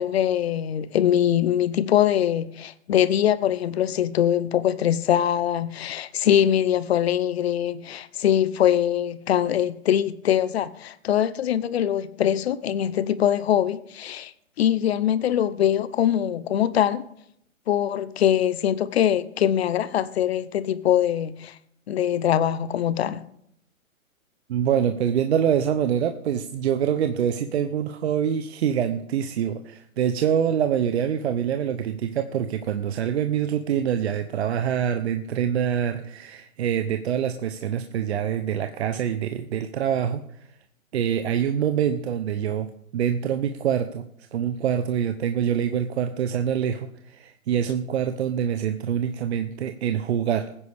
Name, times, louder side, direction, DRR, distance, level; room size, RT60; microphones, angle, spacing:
voice 1, 0.0-14.3 14.6-17.0 17.7-21.5 21.9-23.2, left 10 dB, 50° left, 0.9 m, -23 dB
voice 2, 24.5-40.2 40.9-44.1 44.3-50.5, right 9 dB, 50° right, 0.9 m, -25 dB
20.0 x 9.9 x 3.6 m
hypercardioid pair, 140°, 41 cm